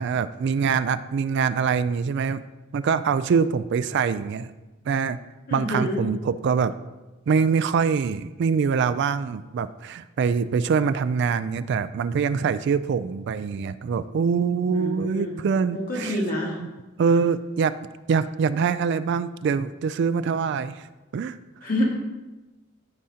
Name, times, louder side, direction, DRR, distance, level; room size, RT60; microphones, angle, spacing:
voice 1, 0.0-2.4 2.7-4.5 4.9-5.2 5.5-6.8 7.3-16.2 17.0-17.8 18.1-20.9 21.1-21.4, right 6 dB, 60° right, 14 dB, 0.3 m, -24 dB
voice 2, 5.5-6.1 14.7-15.4 15.7-16.6 17.0-17.2 21.6-21.8, left 1 dB, 45° left, -3 dB, 1.9 m, -28 dB
15.0 x 5.0 x 2.8 m, 1.1 s
head